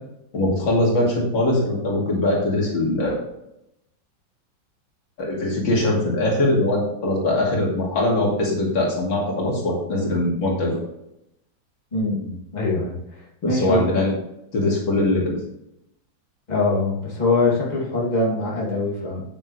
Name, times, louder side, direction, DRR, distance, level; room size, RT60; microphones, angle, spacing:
voice 1, 0.3-3.2 5.2-10.8 13.4-14.1 14.5-15.3, left 1 dB, 70° left, -3 dB, 3.1 m, -21 dB
voice 2, 11.9-13.8 16.5-19.2, left 2 dB, 20° left, -5 dB, 2.6 m, -23 dB
8.9 x 8.9 x 3.2 m, 0.82 s
omnidirectional pair, 2.2 m